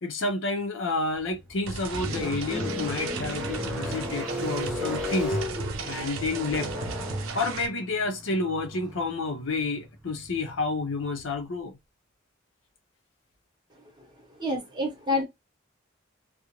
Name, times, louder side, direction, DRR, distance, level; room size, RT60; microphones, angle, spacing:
voice 1, 0.0-5.4 5.8-6.7 7.3-11.8, left 3 dB, 75° left, 0.6 m, -30 dB
sound 1, 1.2-11.4, left 2 dB, 5° right, 0.5 m, -36 dB
sound 2, 1.7-7.7, right 4 dB, 85° right, 0.5 m, -35 dB
voice 2, 14.4-15.2, left 2 dB, 20° right, 0.9 m, -27 dB
2.4 x 2.0 x 2.9 m
head